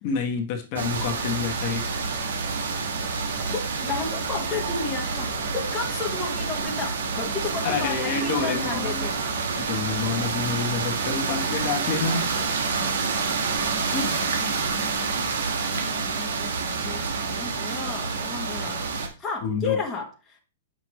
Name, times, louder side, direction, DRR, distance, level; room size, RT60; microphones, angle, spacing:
voice 1, 0.0-1.9 7.6-9.0 9.6-12.3 19.4-19.8, left 5 dB, 35° left, 3 dB, 1.2 m, -28 dB
sound 1, 0.8-19.1, right 4 dB, 85° right, 1.5 m, -28 dB
voice 2, 3.5-9.2 13.8-14.7 15.2-18.9 19.2-20.4, left 5 dB, 10° left, -2 dB, 1.1 m, -33 dB
7.4 x 6.3 x 3.1 m, 0.33 s
hypercardioid pair, 170°, 0 cm